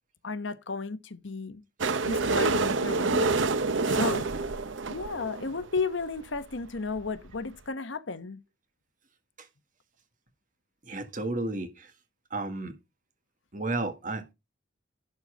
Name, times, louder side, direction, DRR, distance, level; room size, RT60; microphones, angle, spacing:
voice 1, 0.2-1.6 2.1-3.4 3.9-4.3 4.9-8.4, left 4 dB, 75° left, 1.0 m, -33 dB
sound 1, 1.8-5.7 6.4-6.5 6.6-6.7 6.9-7.0 7.4-7.5, right 3 dB, 75° right, 0.8 m, -27 dB
voice 2, 10.9-11.9 12.3-12.8 13.5-14.3, right 2 dB, 40° right, 1.7 m, -33 dB
11.5 x 4.1 x 6.2 m
head